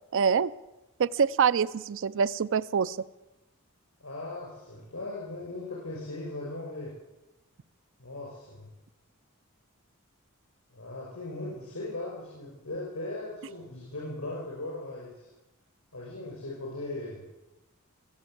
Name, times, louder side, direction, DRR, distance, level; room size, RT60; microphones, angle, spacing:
voice 1, 0.1-0.5 1.0-3.0, right 6 dB, 60° right, 17 dB, 0.5 m, -25 dB
voice 2, 4.0-6.9 8.0-8.7 10.7-15.3 15.9-17.2, left 2 dB, 75° left, -4 dB, 5.6 m, -38 dB
22.0 x 8.0 x 7.8 m, 1.0 s
head